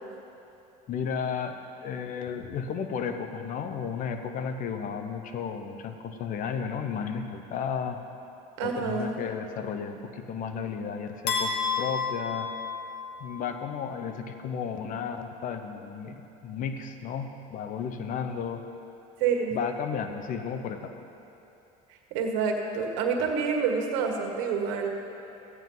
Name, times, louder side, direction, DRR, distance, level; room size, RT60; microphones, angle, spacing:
voice 1, 0.9-8.0 8.6-12.5 13.2-18.6 19.5-20.9, left 6 dB, 50° left, 7 dB, 0.9 m, -33 dB
voice 2, 8.6-9.2 19.2-19.6 22.1-24.9, right 5 dB, 75° right, 2 dB, 1.6 m, -27 dB
sound 1, 11.3-13.4, left 5 dB, 65° left, 1.9 m, -30 dB
15.0 x 9.0 x 4.0 m, 2.9 s
supercardioid pair, 105°, 18 cm